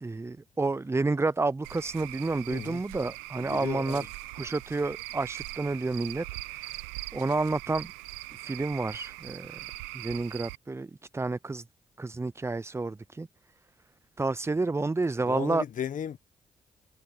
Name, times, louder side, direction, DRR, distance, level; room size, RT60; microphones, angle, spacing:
voice 1, 0.0-4.0 4.4-6.2 7.1-7.9 8.4-9.5 9.9-11.6 12.0-13.3 14.2-15.6, right 3 dB, 15° right, 0.5 m, -30 dB
Cricket / Frog, 1.6-10.6, right 22 dB, 90° right, 1.0 m, -41 dB
voice 2, 2.5-2.8 3.4-4.1 15.3-16.2, left 9 dB, 60° left, 1.2 m, -35 dB
hypercardioid pair, 45°, 15 cm